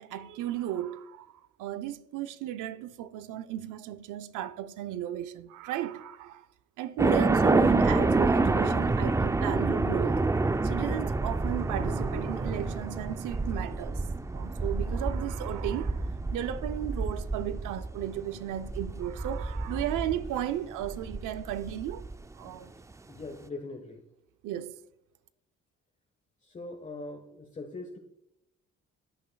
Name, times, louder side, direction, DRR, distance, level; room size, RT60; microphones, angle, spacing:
voice 1, 0.0-6.5 6.8-10.2 10.6-14.0 14.3-22.0 22.4-22.7 24.4-24.8, right 11 dB, 90° right, 0.6 m, -34 dB
sound 1, 7.0-22.1, right 3 dB, 10° right, 0.3 m, -28 dB
voice 2, 23.1-24.0 26.4-28.0, left 2 dB, 25° left, 1.2 m, -42 dB
14.0 x 7.6 x 2.3 m
cardioid pair, 90°, 30 cm